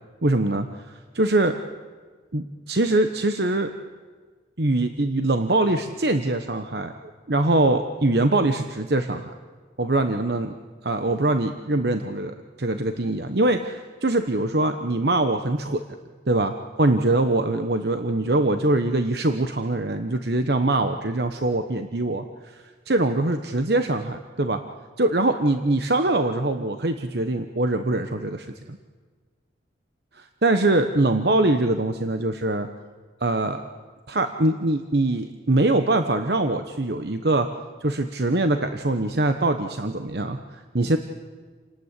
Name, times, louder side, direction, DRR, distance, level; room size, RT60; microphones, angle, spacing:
voice 1, 0.2-0.9 1.1-1.6 2.3-3.7 4.6-9.3 9.8-10.5 10.8-15.8 16.3-24.6 25.0-28.8 30.1-32.7 33.2-33.6 34.1-37.5 37.8-41.0, right 2 dB, 65° right, 7 dB, 1.1 m, -23 dB
28.5 x 19.0 x 8.3 m, 1.5 s
head